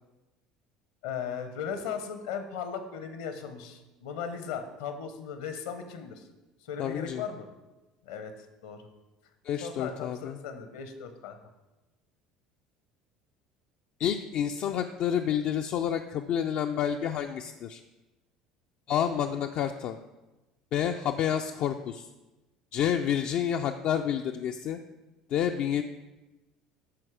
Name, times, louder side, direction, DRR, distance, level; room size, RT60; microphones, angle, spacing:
voice 1, 1.0-6.3 6.6-7.5 8.0-8.3 8.6-8.9 9.6-11.4 19.3-19.4, left 7 dB, 70° left, 8 dB, 1.0 m, -37 dB
voice 2, 6.8-7.2 9.4-10.4 14.0-17.8 18.9-20.0 20.7-22.1 22.7-24.8 25.3-25.8, left 9 dB, 50° left, 5 dB, 0.4 m, -29 dB
11.5 x 4.6 x 4.8 m, 1.1 s
figure-of-eight pair, 65°, 3 cm